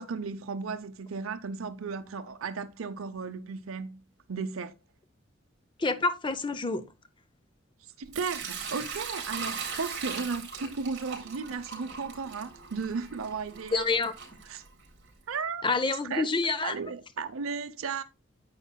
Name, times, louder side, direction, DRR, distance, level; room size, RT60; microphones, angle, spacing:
voice 1, 0.0-4.0 4.3-4.7 7.8-14.0 14.5-14.6 15.3-15.7 16.0-16.3 16.6-18.0, right 5 dB, 85° right, 0.6 m, -35 dB
voice 2, 5.8-6.9 13.7-14.1 15.6-16.8, left 3 dB, 25° left, 0.6 m, -27 dB
Sink (filling or washing) / Liquid, 8.1-15.1, right 6 dB, 55° right, 3.4 m, -39 dB
9.6 x 8.1 x 2.2 m
head